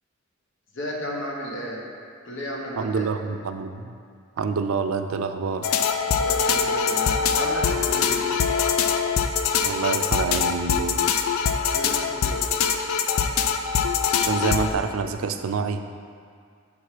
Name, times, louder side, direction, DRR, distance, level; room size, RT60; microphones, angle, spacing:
voice 1, 0.7-1.8 2.2-3.1 6.2-8.2 11.7-12.4, equal, 60° left, -3 dB, 1.2 m, -33 dB
voice 2, 2.8-3.9 4.4-5.7 9.6-11.0 14.2-15.8, right 5 dB, 80° right, 8 dB, 0.4 m, -27 dB
sound 1, 5.6-14.7, left 6 dB, 85° left, 0.4 m, -23 dB
7.2 x 4.5 x 4.8 m, 2.2 s
head